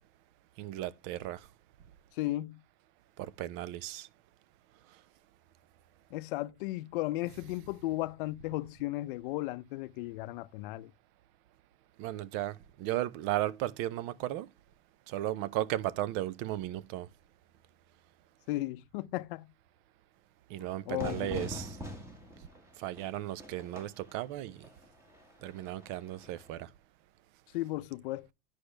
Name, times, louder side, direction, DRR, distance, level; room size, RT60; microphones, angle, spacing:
voice 1, 0.6-1.5 3.2-4.1 12.0-14.5 15.1-17.1 20.5-21.8 22.8-24.7 25.4-26.7, right 14 dB, 40° right, 0.5 m, -35 dB
voice 2, 2.2-2.6 6.1-10.9 18.5-19.5 20.9-21.5 27.5-28.3, left 18 dB, 60° left, 0.6 m, -35 dB
Fire / Fireworks, 21.0-26.5, equal, 10° right, 1.7 m, -45 dB
10.0 x 6.4 x 3.3 m
supercardioid pair, 170°, 30 cm